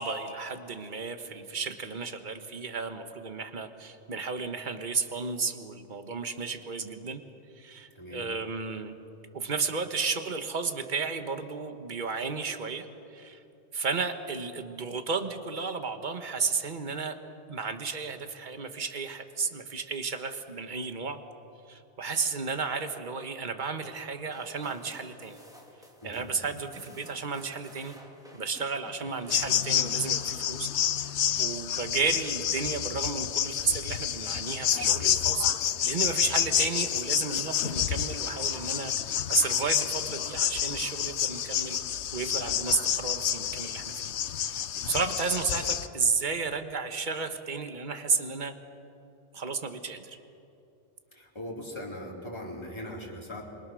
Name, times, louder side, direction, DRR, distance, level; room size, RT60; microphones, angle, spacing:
voice 1, 0.0-7.2 7.5-8.9 9.3-13.4 13.7-17.2 17.5-21.2 21.7-25.4 26.0-28.0 28.3-30.7 31.0-48.5 49.3-50.2, right 4 dB, 45° right, 8 dB, 1.5 m, -33 dB
sound 1, 24.3-30.9, equal, 5° right, 2.8 m, -53 dB
sound 2, 29.3-45.9, left 9 dB, 85° left, 1.0 m, -29 dB
voice 2, 51.1-53.4, left 1 dB, 25° left, -2 dB, 3.8 m, -40 dB
27.0 x 23.5 x 6.4 m, 2.7 s
omnidirectional pair, 1.1 m